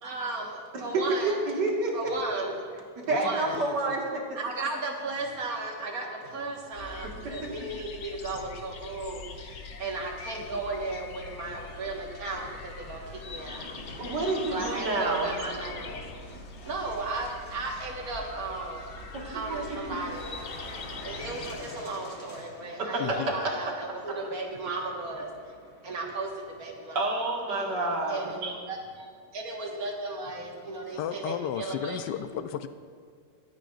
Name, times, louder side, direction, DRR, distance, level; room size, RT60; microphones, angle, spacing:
voice 1, 0.0-0.5 0.8-1.5 1.9-2.6 3.1-3.6 4.4-14.1 14.5-16.0 16.6-18.9 19.2-20.4 21.0-25.3 25.8-27.1 28.1-32.0, right 3 dB, 60° right, 0 dB, 2.0 m, -35 dB
voice 2, 1.3-2.1 2.4-2.5 3.0-4.4 7.2-7.3 14.0-15.4 19.1-19.2 19.7-19.9 22.9-23.0 27.0-28.2, right 2 dB, 85° right, -2 dB, 2.4 m, -29 dB
voice 3, 3.1-4.0 23.0-23.5 30.5-30.6 30.9-32.7, left 9 dB, 85° left, 10 dB, 1.3 m, -35 dB
sound 1, 6.7-21.6, left 4 dB, 55° left, 0.9 m, -43 dB
sound 2, 10.8-28.2, left 1 dB, 40° left, 1.8 m, -48 dB
23.0 x 9.1 x 2.5 m, 2.2 s
omnidirectional pair, 1.8 m